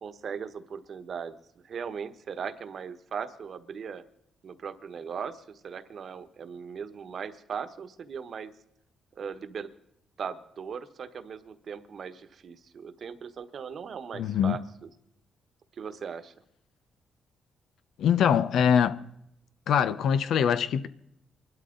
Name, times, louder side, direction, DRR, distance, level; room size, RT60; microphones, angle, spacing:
voice 1, 0.0-1.4 1.6-4.0 4.4-8.5 9.1-9.7 10.2-14.6 15.8-16.3, right 6 dB, 50° right, 1.2 m, -38 dB
voice 2, 14.1-14.6 18.0-19.0 19.7-20.9, left 8 dB, 75° left, 0.8 m, -23 dB
25.0 x 12.5 x 3.9 m
cardioid pair, 125°, 0 cm